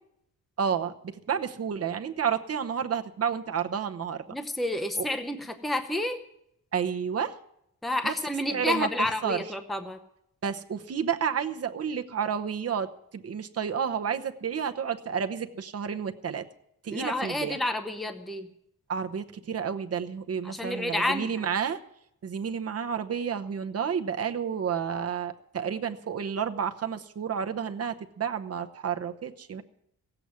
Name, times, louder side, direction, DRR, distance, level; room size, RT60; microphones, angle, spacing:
voice 1, 0.6-4.2 5.0-5.1 6.7-7.4 8.0-8.1 8.5-8.9 9.2-9.4 10.4-16.5 16.8-17.6 18.9-21.8 22.2-29.6, right 7 dB, 45° right, 7 dB, 0.9 m, -30 dB
voice 2, 4.3-6.2 7.8-10.0 16.9-18.5 20.4-21.3, left 1 dB, ahead, 7 dB, 0.8 m, -30 dB
16.0 x 7.9 x 9.5 m, 0.75 s
wide cardioid pair, 170°, 34 cm